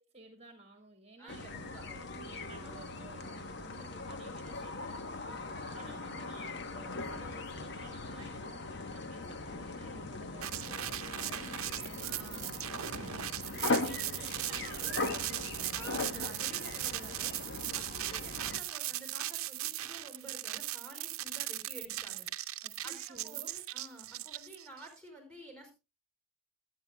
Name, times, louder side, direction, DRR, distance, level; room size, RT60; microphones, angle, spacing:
voice 1, 0.1-1.5 1.9-5.1 5.7-16.0 22.6-23.5, right 2 dB, 30° right, 5 dB, 1.6 m, -54 dB
voice 2, 1.2-2.2 5.1-5.9 9.9-10.1 12.0-12.6 12.9-13.2 15.7-22.2 22.8-25.7, right 2 dB, 5° left, 4 dB, 5.0 m, -51 dB
sound 1, 1.3-18.6, left 3 dB, 55° left, 0.9 m, -40 dB
sound 2, 10.4-24.9, right 14 dB, 90° right, 0.7 m, -38 dB
21.5 x 9.2 x 2.2 m, 0.26 s
head